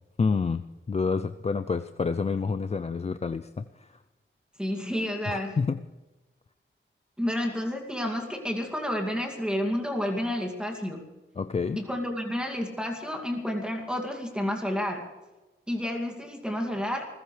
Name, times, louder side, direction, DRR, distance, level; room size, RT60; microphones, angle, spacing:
voice 1, 0.2-3.9 5.3-5.8 11.4-11.8, left 5 dB, 30° left, 10 dB, 0.4 m, -28 dB
voice 2, 4.6-5.6 7.2-11.0 11.8-15.0 15.7-17.1, equal, 5° right, 2 dB, 2.3 m, -30 dB
27.5 x 15.5 x 3.3 m, 1.1 s
wide cardioid pair, 110°, 21 cm